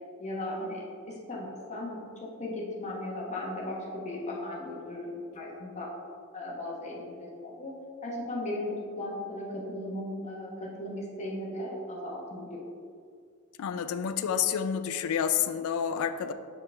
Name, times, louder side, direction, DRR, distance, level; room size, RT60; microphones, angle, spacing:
voice 1, 0.2-5.9 6.3-7.8 8.0-12.6, left 1 dB, 30° left, -5 dB, 1.0 m, -37 dB
voice 2, 13.6-16.3, left 8 dB, 70° left, 10 dB, 0.3 m, -29 dB
6.7 x 4.9 x 3.2 m, 2.2 s
head